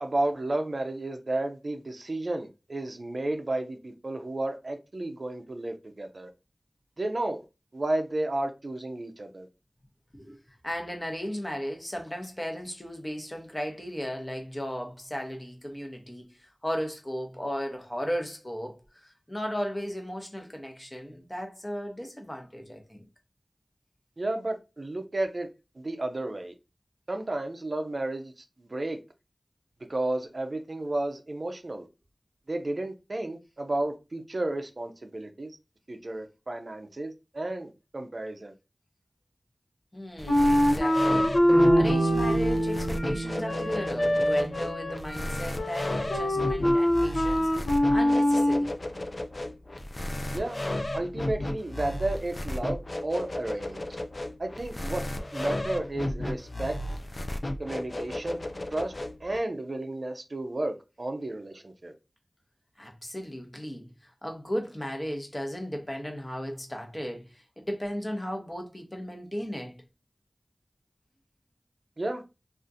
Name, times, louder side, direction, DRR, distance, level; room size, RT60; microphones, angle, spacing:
voice 1, 0.0-6.3 7.0-7.4 7.7-9.5 24.2-25.5 25.8-26.5 27.1-28.3 28.7-29.0 29.9-31.9 32.5-35.5 35.9-38.5 50.3-50.6 50.9-53.8 54.4-55.0 55.3-56.8 57.6-58.4 58.7-58.9 59.2-61.9 72.0-72.2, right 2 dB, 55° right, 0.5 m, -32 dB
voice 2, 10.6-23.1 39.9-48.7 62.8-69.8, equal, 25° left, 0.9 m, -36 dB
sound 1, 40.2-59.4, left 1 dB, 50° left, 0.4 m, -34 dB
Wind instrument woodwind instrument, 40.3-48.7, left 1 dB, 70° left, 0.7 m, -25 dB
sound 2, 41.5-45.5, right 2 dB, 25° right, 0.9 m, -30 dB
3.7 x 2.4 x 2.6 m
wide cardioid pair, 55°, 0 cm